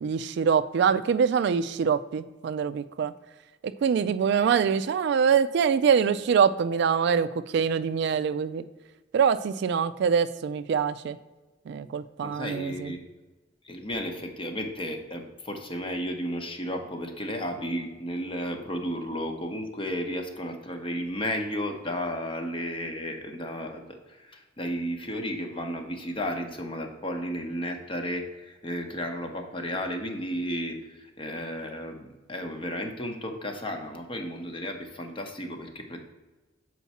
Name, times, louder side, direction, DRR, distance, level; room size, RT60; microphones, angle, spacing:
voice 1, 0.0-3.1 3.6-8.6 9.1-11.2 11.7-12.9, right 6 dB, 60° right, 13 dB, 0.3 m, -24 dB
voice 2, 12.2-13.1 13.6-36.0, equal, 30° left, 5 dB, 0.8 m, -33 dB
7.1 x 4.6 x 4.1 m, 1.2 s
head